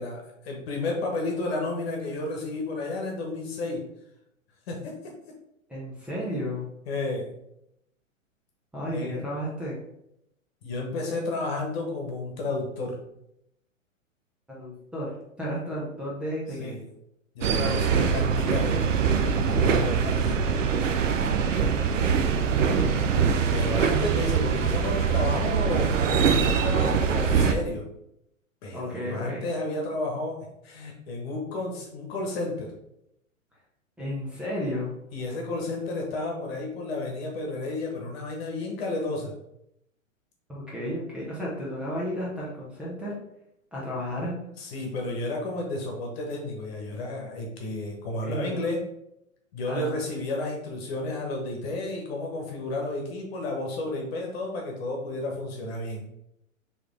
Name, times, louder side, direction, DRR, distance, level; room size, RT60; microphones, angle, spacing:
voice 1, 0.0-3.8 4.7-5.1 6.9-7.3 8.9-9.1 10.6-13.0 16.6-16.9 17.3-20.5 23.5-27.9 28.6-30.4 30.6-32.7 35.1-39.3 44.6-48.8 49.5-56.1, left 2 dB, 50° left, 1 dB, 1.1 m, -32 dB
voice 2, 5.7-6.7 8.7-9.8 14.5-15.1 15.4-16.8 22.5-23.0 26.8-27.2 28.7-29.5 34.0-34.9 40.5-43.1 43.7-44.3 48.2-48.6 49.7-49.9, equal, 5° right, -7 dB, 0.4 m, -33 dB
sound 1, 17.4-27.5, right 6 dB, 65° right, 0.6 m, -23 dB
4.7 x 3.2 x 3.1 m, 0.81 s
figure-of-eight pair, 110°, 40 cm